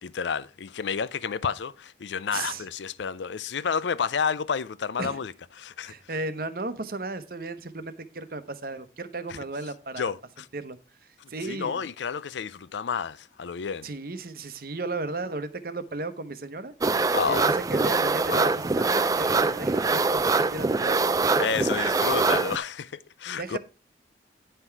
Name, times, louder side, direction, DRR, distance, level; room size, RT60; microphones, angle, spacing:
voice 1, 0.0-5.9 9.3-9.4 10.0-10.5 11.2-13.9 17.1-17.5 18.3-18.4 21.4-23.6, left 6 dB, 85° left, 0.5 m, -30 dB
voice 2, 2.3-2.7 5.0-5.2 5.8-10.1 10.5-10.8 11.3-11.9 13.8-16.7 17.3-21.0 23.4-23.6, right 2 dB, 55° right, 1.0 m, -35 dB
sound 1, 16.8-22.6, right 3 dB, 20° right, 0.4 m, -24 dB
9.9 x 5.8 x 4.6 m
head